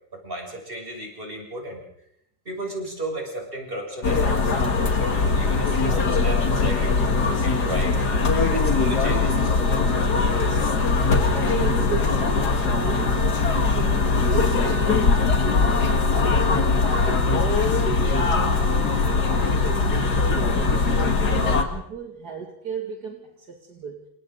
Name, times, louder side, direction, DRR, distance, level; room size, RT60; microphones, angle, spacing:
voice 1, 0.1-1.8 2.4-8.1 8.5-9.7, right 1 dB, 35° right, 0 dB, 7.5 m, -34 dB
sound 1, 4.0-21.6, left 4 dB, 70° left, 2.6 m, -21 dB
voice 2, 11.4-16.0 16.3-24.0, right 7 dB, 75° right, 1 dB, 2.9 m, -35 dB
29.0 x 28.0 x 4.0 m, 0.77 s
omnidirectional pair, 1.7 m